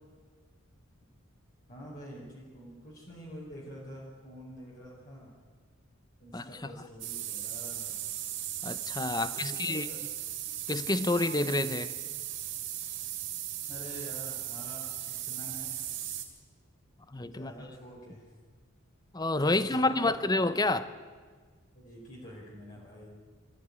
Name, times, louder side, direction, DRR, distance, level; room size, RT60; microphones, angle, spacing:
voice 1, 1.7-5.3 6.2-8.0 9.2-10.0 13.7-15.8 17.2-18.3 19.4-20.1 21.7-23.1, equal, 40° left, 4.8 m, -47 dB
sound 1, 7.0-16.2, right 12 dB, 60° right, 3.1 m, -37 dB
voice 2, 8.6-9.9 10.7-11.9 17.1-17.5 19.1-20.9, left 2 dB, 20° left, 0.8 m, -28 dB
24.0 x 15.0 x 9.7 m
head